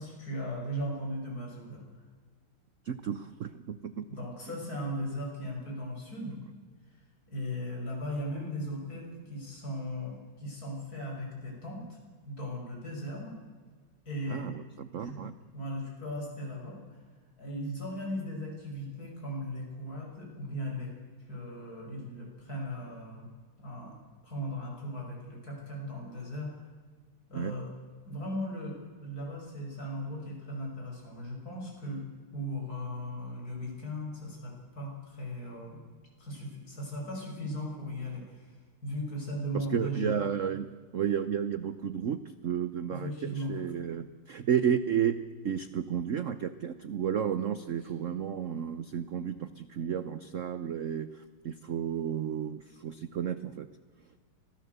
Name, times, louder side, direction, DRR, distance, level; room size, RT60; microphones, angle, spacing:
voice 1, 0.0-2.0 4.1-6.4 7.3-12.0 12.2-13.4 14.0-14.5 15.0-15.2 15.5-17.0 17.4-20.9 21.3-23.3 23.6-26.6 27.3-27.7 28.1-32.0 32.3-35.8 36.2-38.5 38.8-40.2 42.9-43.5, equal, 45° left, -1 dB, 6.6 m, -37 dB
voice 2, 2.9-4.1 14.3-15.3 27.3-27.5 39.5-45.2 45.4-53.7, right 8 dB, 70° right, 13 dB, 0.7 m, -32 dB
24.5 x 17.0 x 8.1 m, 1.5 s
omnidirectional pair, 2.3 m